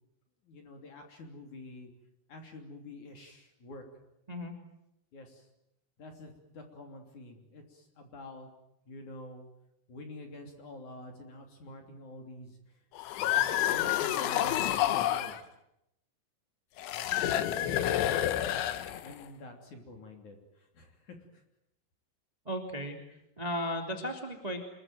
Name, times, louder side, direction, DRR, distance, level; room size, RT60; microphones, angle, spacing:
voice 1, 0.4-1.9 2.3-3.8 5.1-5.5 6.0-8.5 8.9-9.5 9.9-12.6 13.2-15.4 17.0-18.3 19.0-21.2, left 2 dB, 40° left, 4 dB, 3.9 m, -48 dB
sound 1, 13.0-15.4 16.8-19.2, left 12 dB, 75° left, 3.4 m, -29 dB
voice 2, 22.4-23.0 23.4-24.6, equal, 15° right, 4 dB, 1.6 m, -35 dB
26.0 x 22.5 x 9.2 m, 0.83 s
omnidirectional pair, 5.8 m